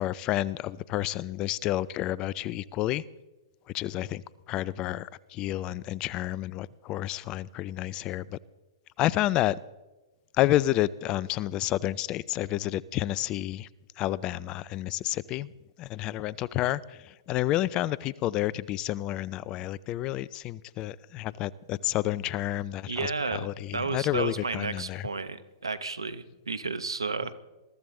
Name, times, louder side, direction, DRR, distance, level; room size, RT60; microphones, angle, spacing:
voice 1, 0.0-3.0 3.7-8.4 9.0-9.6 10.3-13.7 14.0-15.5 15.8-25.1, left 14 dB, 30° left, 22 dB, 0.4 m, -30 dB
voice 2, 22.9-27.4, right 4 dB, 85° right, 13 dB, 1.0 m, -32 dB
21.5 x 14.0 x 3.8 m, 1.1 s
figure-of-eight pair, 115°, 2 cm